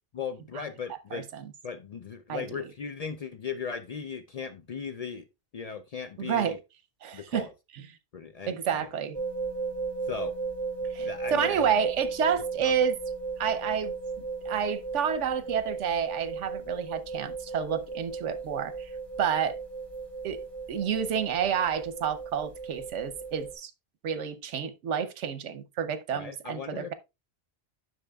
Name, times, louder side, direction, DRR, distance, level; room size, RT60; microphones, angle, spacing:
voice 1, 0.1-1.3 1.6-5.3 5.5-6.6 7.1-7.5 8.1-8.9 10.1-10.3 11.0-11.7 12.6-12.7 26.1-26.9, left 6 dB, 70° left, 0.3 m, -37 dB
voice 2, 1.1-1.4 2.3-2.6 6.2-6.6 7.0-7.5 8.5-9.2 10.9-13.0 13.4-13.9 14.5-18.7 19.2-19.6 20.2-20.4 20.7-23.7 24.0-26.9, right 8 dB, 80° right, 1.1 m, -29 dB
sound 1, 9.1-23.5, right 4 dB, 25° right, 2.8 m, -36 dB
10.0 x 6.3 x 2.3 m
omnidirectional pair, 1.2 m